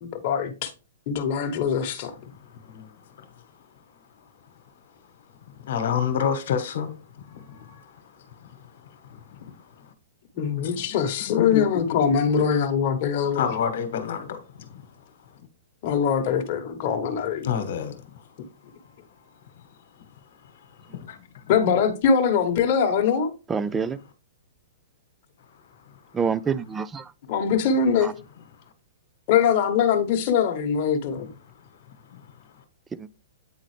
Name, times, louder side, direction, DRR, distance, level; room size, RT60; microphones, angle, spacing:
voice 1, 0.0-0.7 1.1-2.1 10.3-13.5 15.8-17.5 21.5-23.3 27.3-28.1 29.3-31.3, left 7 dB, 40° left, 1.1 m, -22 dB
voice 2, 2.3-3.3 5.5-9.9 10.6-11.0 11.3-11.9 13.3-14.9 17.4-18.3 18.8-18.9 20.0-21.5 25.7-26.0 31.2-31.3 32.1-32.3, left 7 dB, 65° left, 1.2 m, -31 dB
voice 3, 23.5-24.0 26.1-27.1 28.0-28.1 33.0-33.1, right 6 dB, 15° right, 0.3 m, -27 dB
8.5 x 3.8 x 3.2 m
hypercardioid pair, 150°, 0 cm